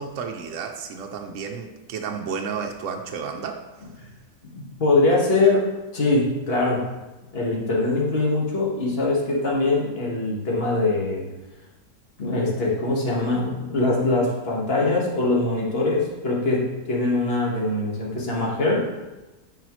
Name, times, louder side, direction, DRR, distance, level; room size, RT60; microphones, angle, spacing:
voice 1, 0.0-3.6, right 6 dB, 65° right, 3 dB, 0.9 m, -32 dB
voice 2, 4.4-5.6 5.9-6.9 7.3-11.3 12.2-18.8, left 2 dB, 40° left, -4 dB, 1.7 m, -22 dB
10.0 x 4.9 x 3.1 m, 1.1 s
omnidirectional pair, 1.7 m